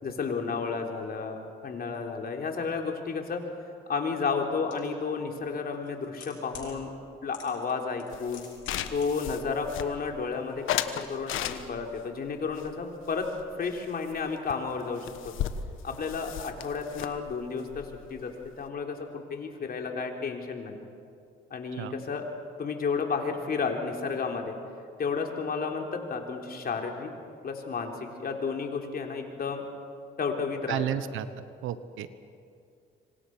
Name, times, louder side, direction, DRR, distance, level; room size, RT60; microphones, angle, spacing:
voice 1, 0.0-3.4 3.9-6.9 7.2-8.5 8.9-13.3 13.6-15.3 15.8-18.3 18.6-20.7 21.5-22.3 22.6-24.5 25.0-27.1 27.4-29.6 30.2-31.0, left 5 dB, 50° left, 2 dB, 3.6 m, -32 dB
sound 1, 4.7-4.8 5.7-6.7 7.3-7.7 8.0-9.1 9.3-9.4, left 9 dB, 70° left, 7.8 m, -46 dB
sound 2, 8.1-10.2 10.7-12.0 12.5-13.8 14.1-14.2 14.5-14.6 14.8-18.7, left 10 dB, 85° left, 1.3 m, -36 dB
voice 2, 30.7-31.3 31.6-32.2, right 11 dB, 90° right, 13 dB, 1.1 m, -32 dB
26.5 x 25.0 x 6.1 m, 2.4 s
cardioid pair, 90°, 20 cm